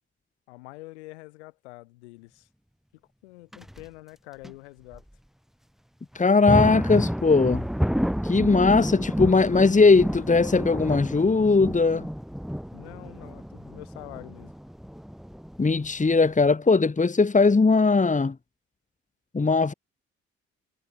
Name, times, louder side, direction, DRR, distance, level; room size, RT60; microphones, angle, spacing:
voice 1, 0.5-2.5 3.2-5.0 12.7-14.5, left 22 dB, 85° left, 8.0 m, -45 dB
sound 1, 3.5-3.8 4.4-4.5 4.9-5.0 6.1-16.5, equal, ahead, 3.8 m, -30 dB
voice 2, 6.2-7.7 8.2-12.1 15.6-18.4 19.3-19.7, left 4 dB, 25° left, 2.0 m, -19 dB
hypercardioid pair, 50°, 33 cm